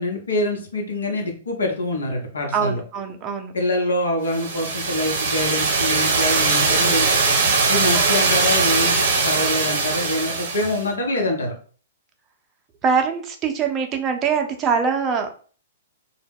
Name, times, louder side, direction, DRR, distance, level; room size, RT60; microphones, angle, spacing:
voice 1, 0.0-2.8 3.5-7.2 7.7-11.5, left 1 dB, 80° left, 1 dB, 0.8 m, -25 dB
voice 2, 2.5-3.5 7.9-8.1 12.8-15.4, right 6 dB, 25° right, 3 dB, 0.5 m, -23 dB
sound 1, 4.3-10.8, right 4 dB, 60° right, 0.8 m, -20 dB
2.1 x 2.1 x 3.5 m, 0.41 s
figure-of-eight pair, 115°, 0 cm